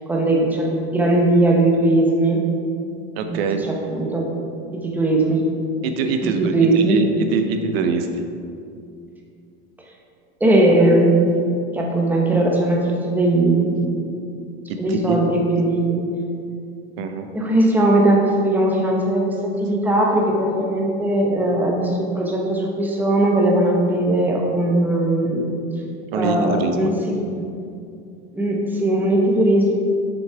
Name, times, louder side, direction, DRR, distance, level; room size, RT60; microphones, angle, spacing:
voice 1, 0.1-2.4 3.3-3.4 3.6-4.3 4.7-5.4 6.2-7.0 10.4-11.2 11.7-14.1 14.8-16.0 17.3-25.6 26.1-27.5 28.3-29.9, right 1 dB, 5° right, -1 dB, 0.8 m, -19 dB
voice 2, 3.2-3.6 5.8-8.1 14.7-15.2 17.0-17.3 26.1-26.9, right 5 dB, 75° right, 6 dB, 0.7 m, -24 dB
7.1 x 6.0 x 3.4 m, 2.4 s
supercardioid pair, 135°, 30 cm